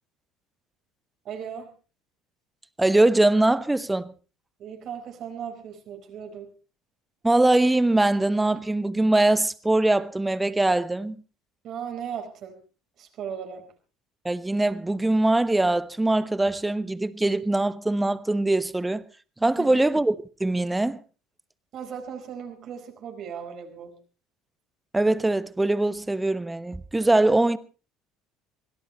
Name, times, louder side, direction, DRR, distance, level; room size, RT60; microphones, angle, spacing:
voice 1, 1.2-1.7 4.6-6.5 11.6-12.6 13.0-13.7 19.6-19.8 21.7-23.9, right 8 dB, 50° right, 4.3 m, -37 dB
voice 2, 2.8-4.1 7.2-11.1 14.2-19.0 19.4-21.0 24.9-27.6, right 2 dB, 10° right, 1.1 m, -22 dB
25.0 x 17.0 x 3.1 m
hypercardioid pair, 65°, 0 cm